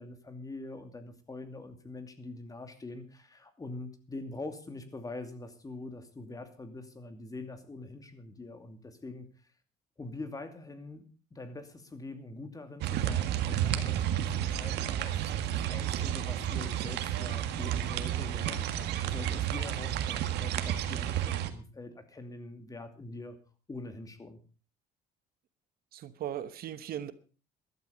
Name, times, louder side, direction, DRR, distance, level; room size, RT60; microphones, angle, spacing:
voice 1, 0.0-9.3 10.0-11.0 11.3-18.7 19.0-23.4 23.7-24.4, left 2 dB, 20° left, 8 dB, 2.6 m, -44 dB
sound 1, 12.8-21.5, right 11 dB, 80° right, 1.7 m, -31 dB
voice 2, 25.9-27.1, right 10 dB, 65° right, 13 dB, 1.2 m, -38 dB
14.5 x 12.5 x 5.2 m, 0.36 s
cardioid pair, 110°, 17 cm